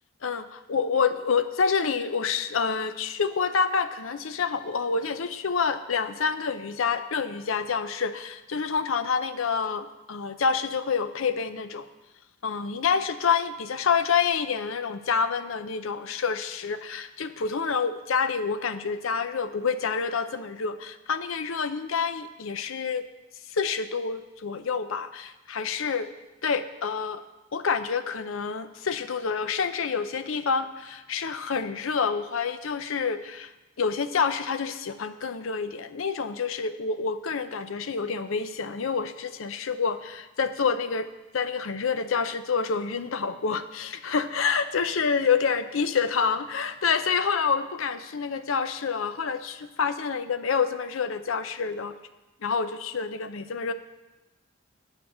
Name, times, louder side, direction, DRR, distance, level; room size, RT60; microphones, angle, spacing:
voice 1, 0.2-11.9 12.4-23.1 23.5-26.1 26.4-27.2 27.5-33.5 33.8-41.1 41.3-52.0 52.4-53.7, left 5 dB, 75° left, 11 dB, 0.6 m, -28 dB
9.4 x 5.2 x 7.7 m, 1.1 s
head